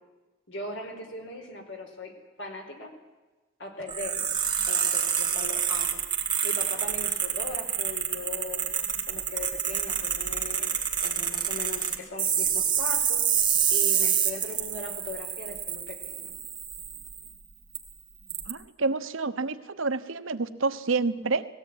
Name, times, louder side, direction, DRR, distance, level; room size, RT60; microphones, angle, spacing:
voice 1, 0.5-2.1 2.4-2.9 3.6-4.3 4.6-6.0 6.4-8.6 9.0-10.7 11.0-13.2 13.7-16.3, left 2 dB, 65° left, 3 dB, 4.5 m, -39 dB
sound 1, 3.9-17.3 17.8-17.9 18.3-18.5, right 8 dB, 20° right, 2.3 m, -28 dB
voice 2, 18.5-21.5, right 3 dB, 75° right, 11 dB, 1.1 m, -28 dB
19.0 x 17.0 x 9.6 m, 1.2 s
head